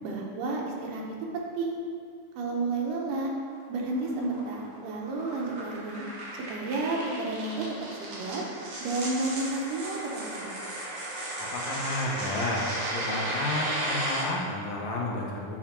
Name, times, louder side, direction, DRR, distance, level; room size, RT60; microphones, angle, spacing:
voice 1, 0.0-1.0 1.4-1.8 2.4-3.3 3.7-6.1 6.5-7.6 8.0-8.4 8.8-10.6, right 2 dB, 80° right, -1 dB, 2.6 m, -31 dB
sound 1, 3.5-14.2, right 1 dB, 55° right, 1.7 m, -35 dB
voice 2, 11.4-15.6, left 2 dB, 70° left, -2 dB, 2.0 m, -31 dB
8.4 x 3.9 x 4.4 m, 2.2 s
omnidirectional pair, 3.8 m